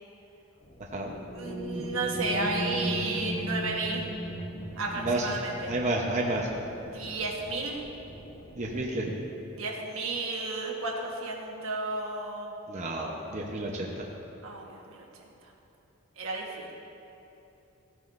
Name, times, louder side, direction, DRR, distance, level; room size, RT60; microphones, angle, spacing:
sound 1, 0.6-8.9, equal, 35° left, 0.9 m, -37 dB
voice 1, 1.3-4.1 4.8-5.7 6.8-7.8 9.5-12.5 14.4-15.0 16.2-16.7, right 3 dB, 75° right, -1 dB, 1.3 m, -33 dB
voice 2, 4.9-5.3 5.7-6.5 8.6-9.1 12.7-14.0, right 2 dB, 35° right, -2 dB, 0.9 m, -30 dB
15.0 x 9.4 x 2.6 m, 2.9 s
head